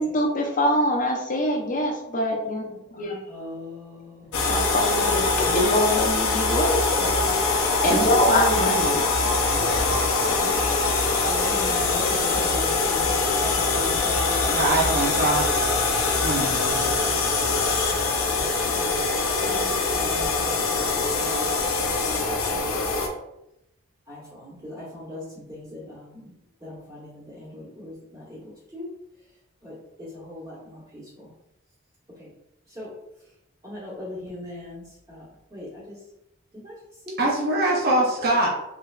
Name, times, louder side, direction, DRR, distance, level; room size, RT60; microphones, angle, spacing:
voice 1, 0.0-3.2 4.5-6.9 7.5-11.3, equal, 35° left, 0 dB, 0.6 m, -25 dB
voice 2, 3.3-4.4 11.2-15.3 16.1-16.5 16.8-19.0 19.4-22.9 24.1-26.3 26.6-28.9 29.6-31.3 32.2-32.3 32.7-32.9 33.6-35.2 35.5-36.0 36.6-36.7 37.1-37.3 37.9-38.1, left 1 dB, 15° right, -9 dB, 0.9 m, -40 dB
sound 1, 4.3-23.1, left 3 dB, 85° left, 0.6 m, -23 dB
voice 3, 7.9-9.0 14.5-15.6 16.2-16.9 37.2-38.5, right 2 dB, 45° right, -2 dB, 0.6 m, -24 dB
3.2 x 3.2 x 2.4 m, 0.85 s
head